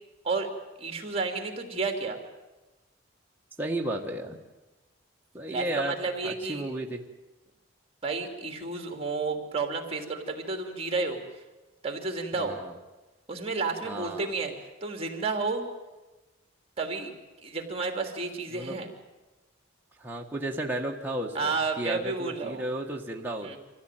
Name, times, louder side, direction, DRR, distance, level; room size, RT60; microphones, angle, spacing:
voice 1, 0.8-2.2 5.5-6.7 8.0-11.2 11.8-12.5 13.3-15.6 16.8-17.1 17.4-18.9 21.3-22.7 23.4-23.6, right 3 dB, 30° right, 4 dB, 2.9 m, -31 dB
voice 2, 3.6-4.4 5.3-6.0 6.2-7.0 12.3-12.7 13.8-14.3 18.5-18.8 20.0-23.6, right 1 dB, 10° right, -1 dB, 1.6 m, -33 dB
25.0 x 15.5 x 9.2 m, 1.1 s
head